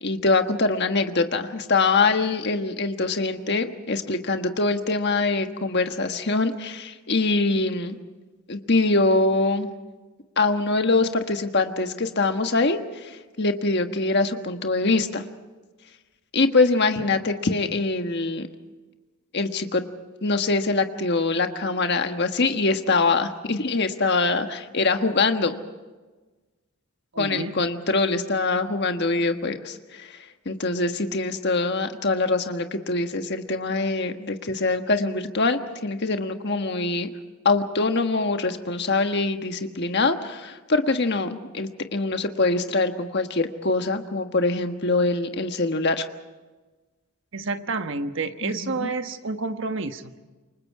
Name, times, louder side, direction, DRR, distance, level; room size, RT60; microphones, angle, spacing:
voice 1, 0.0-8.0 8.5-9.7 10.4-15.2 16.3-18.5 19.3-19.8 20.2-25.6 27.2-37.1 37.4-46.0 48.4-48.9, left 3 dB, 50° left, 6 dB, 1.4 m, -24 dB
voice 2, 27.1-27.6 47.3-50.2, right 3 dB, 55° right, 8 dB, 1.3 m, -29 dB
28.0 x 24.5 x 4.8 m, 1.2 s
head